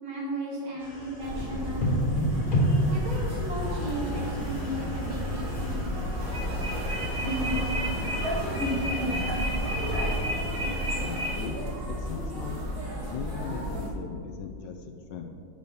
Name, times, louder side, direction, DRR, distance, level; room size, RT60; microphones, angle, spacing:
voice 1, 0.0-2.3 2.9-6.0, right 1 dB, 75° right, -4 dB, 2.7 m, -35 dB
sound 1, 0.8-11.9, equal, 30° left, 1.2 m, -33 dB
sound 2, 1.2-13.9, equal, 50° right, 2.1 m, -32 dB
sound 3, 3.6-11.5, equal, 30° right, 1.2 m, -33 dB
voice 2, 9.9-10.4 11.0-11.6 12.0-12.6 13.1-15.3, left 6 dB, 70° left, 5 dB, 1.2 m, -39 dB
6.8 x 6.5 x 5.2 m, 2.4 s
omnidirectional pair, 2.2 m